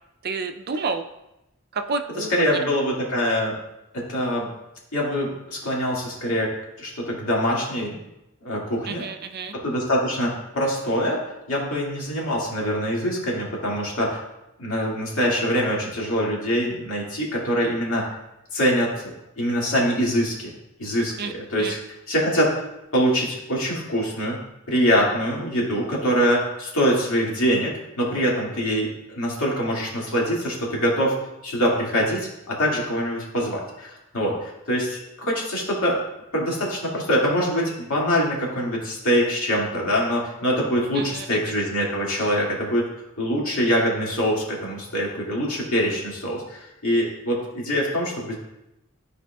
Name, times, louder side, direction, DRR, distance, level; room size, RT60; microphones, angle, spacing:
voice 1, 0.2-1.0 1.7-2.6 8.9-9.6 21.2-21.3 21.6-21.7 40.9-41.5, right 4 dB, 45° right, 7 dB, 0.5 m, -30 dB
voice 2, 2.2-3.6 3.9-4.5 4.9-6.5 6.8-8.0 8.4-9.1 9.5-14.2 14.6-18.1 18.5-20.5 20.8-21.8 22.1-22.5 22.9-24.4 24.7-31.1 31.4-36.0 36.3-42.8 43.2-48.3, equal, 70° left, -4 dB, 2.2 m, -24 dB
12.5 x 4.8 x 2.3 m, 0.90 s
head